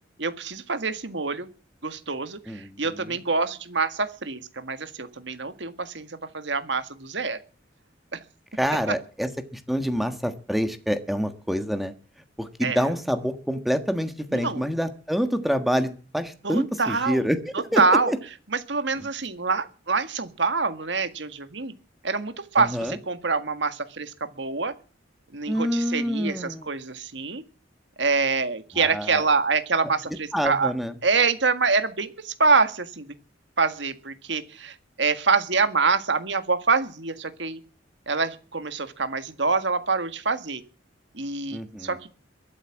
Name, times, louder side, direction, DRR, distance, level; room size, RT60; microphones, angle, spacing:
voice 1, 0.2-1.5 1.8-7.4 8.1-8.2 8.9-9.0 12.6-12.8 14.3-14.7 16.4-17.3 17.5-18.1 18.5-21.7 22.0-24.7 25.3-27.4 28.0-30.7 31.0-33.1 33.6-37.6 38.1-40.6 41.1-42.0, right 4 dB, 65° right, 10 dB, 1.8 m, -25 dB
voice 2, 2.5-2.8 8.6-11.9 12.4-17.8 18.1-18.2 22.6-23.0 25.5-26.6 28.7-29.2 30.3-30.9 41.5-42.0, equal, ahead, 8 dB, 1.4 m, -27 dB
22.5 x 8.4 x 7.3 m, 0.38 s
head